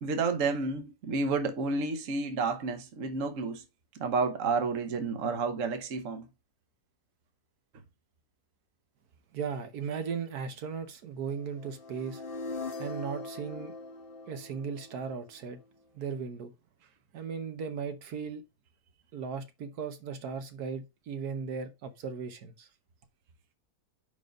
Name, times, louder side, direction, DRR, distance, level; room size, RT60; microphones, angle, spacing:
voice 1, 0.0-3.6 3.9-6.3, right 4 dB, 60° right, 1.4 m, -30 dB
voice 2, 9.3-12.2 12.8-13.7 14.3-15.6 15.9-16.5 17.1-18.4 19.1-22.7, right 6 dB, 80° right, 1.4 m, -37 dB
sound 1, 11.5-15.6, left 3 dB, 40° left, 1.1 m, -41 dB
5.2 x 5.2 x 5.2 m
omnidirectional pair, 1.6 m